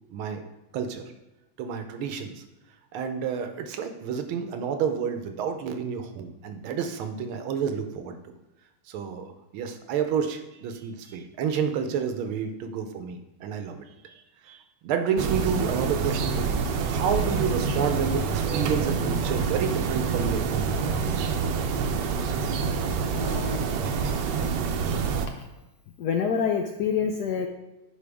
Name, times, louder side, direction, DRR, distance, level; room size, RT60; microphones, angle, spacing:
voice 1, 0.1-0.5 0.7-1.0 1.6-2.4 2.9-8.2 8.9-20.8, right 7 dB, 85° right, 7 dB, 1.6 m, -30 dB
sound 1, 15.2-25.3, right 5 dB, 70° right, 1.2 m, -27 dB
voice 2, 23.1-23.7 25.4-25.5 26.0-27.5, left 6 dB, 75° left, 4 dB, 0.9 m, -27 dB
10.0 x 4.5 x 3.5 m, 1.0 s
omnidirectional pair, 2.2 m